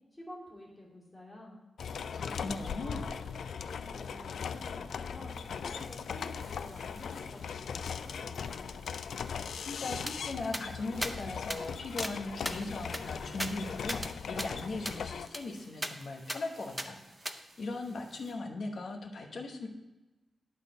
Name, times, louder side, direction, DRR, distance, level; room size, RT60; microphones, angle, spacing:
voice 1, 0.1-1.6 2.2-8.7, left 1 dB, 15° left, -5 dB, 2.5 m, -49 dB
sound 1, 1.8-15.3, left 6 dB, 80° left, 0.3 m, -39 dB
voice 2, 1.9-3.1 9.6-17.0 17.6-19.7, left 3 dB, 60° left, 2 dB, 1.1 m, -39 dB
sound 2, 5.2-18.3, right 1 dB, 60° right, 3.2 m, -60 dB
sound 3, 10.1-10.2 10.5-10.7 11.0-11.1 11.5-11.6 12.0-12.1 12.5-14.1 14.4-14.5 14.9-15.0 15.3-15.4 15.8-15.9 16.3-16.4 16.8-16.9 17.3-17.4, equal, 5° right, 0.5 m, -37 dB
11.0 x 4.1 x 5.1 m, 1.1 s
wide cardioid pair, 150°, 0 cm